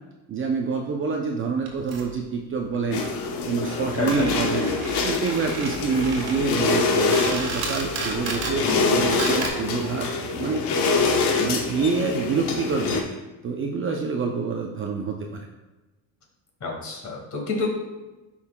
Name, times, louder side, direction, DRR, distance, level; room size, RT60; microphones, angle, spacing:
voice 1, 0.3-3.0 3.4-4.7 5.0-10.6 11.4-13.0 13.4-15.5, right 5 dB, 30° right, 1 dB, 0.5 m, -27 dB
sound 1, 1.7-2.1 2.7-2.8 3.0-3.1 3.3-3.4 3.6-8.6 9.0-9.5, right 4 dB, 55° right, 1.6 m, -33 dB
sound 2, 2.9-13.0, left 4 dB, 65° left, 1.0 m, -25 dB
voice 2, 16.6-17.7, left 3 dB, 40° left, 0 dB, 2.0 m, -28 dB
9.1 x 5.5 x 2.2 m, 1.1 s
cardioid pair, 130°, 44 cm